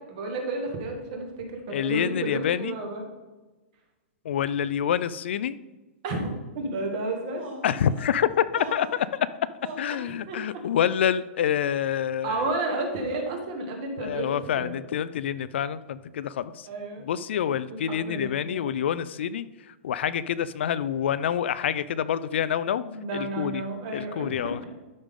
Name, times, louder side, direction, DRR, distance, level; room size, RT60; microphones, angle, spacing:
voice 1, 0.1-3.0 6.0-6.3 6.5-7.4 10.0-10.6 12.2-14.8 16.7-17.0 17.7-18.6 22.8-24.6, right 2 dB, 30° right, 2 dB, 1.5 m, -32 dB
voice 2, 1.7-2.8 4.2-5.6 7.6-9.2 9.8-12.5 14.0-16.7 17.0-22.8 23.1-23.6 23.9-24.6, left 9 dB, 55° left, 15 dB, 0.3 m, -27 dB
sound 1, 7.3-8.1 8.5-9.1 9.6-10.1, right 2 dB, 50° right, 2.2 m, -40 dB
12.0 x 5.2 x 3.7 m, 1.2 s
hypercardioid pair, 175°, 7 cm